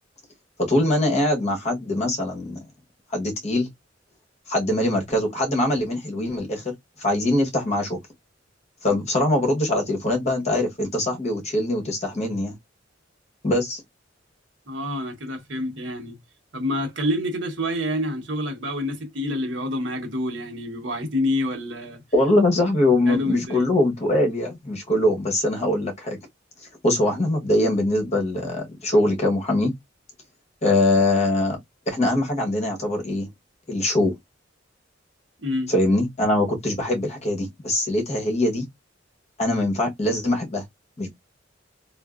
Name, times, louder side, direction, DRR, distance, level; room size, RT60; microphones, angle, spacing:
voice 1, 0.6-2.6 3.1-3.7 4.5-6.7 7.0-8.0 8.8-12.5 13.4-13.8 22.1-26.2 26.8-29.7 30.6-31.6 31.9-33.3 33.7-34.1 35.7-38.7 39.4-40.6 41.0-41.1, left 1 dB, 35° left, 1.1 m, -22 dB
voice 2, 14.7-16.2 16.5-22.0 23.1-23.7 35.4-35.7, left 1 dB, 65° right, 1.1 m, -27 dB
3.5 x 2.4 x 2.4 m
head